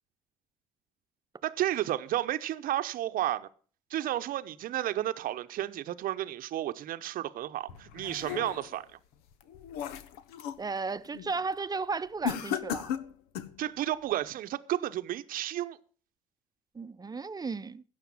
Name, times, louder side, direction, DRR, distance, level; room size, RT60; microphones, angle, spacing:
voice 1, 1.4-3.5 3.9-8.9 13.6-15.8, right 13 dB, 60° right, 0.9 m, -32 dB
sound 1, 7.7-8.8 9.3-10.7 11.0-11.4 12.2-13.6, left 9 dB, 75° left, 1.0 m, -36 dB
voice 2, 10.6-12.9 16.7-17.8, right 4 dB, 25° right, 0.8 m, -34 dB
16.0 x 6.7 x 7.2 m
hypercardioid pair, 55°, 17 cm